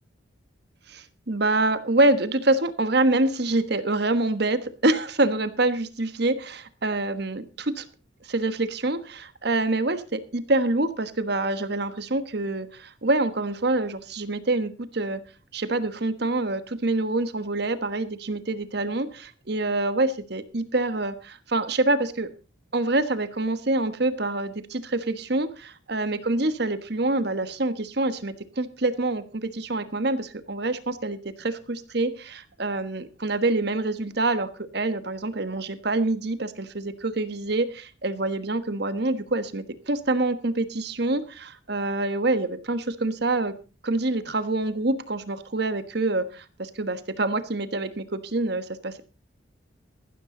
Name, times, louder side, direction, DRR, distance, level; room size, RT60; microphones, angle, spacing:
voice 1, 0.9-7.9 8.2-15.2 15.5-22.3 22.7-43.5 43.8-49.0, right 2 dB, 55° right, 12 dB, 1.3 m, -26 dB
14.5 x 12.5 x 3.9 m, 0.34 s
head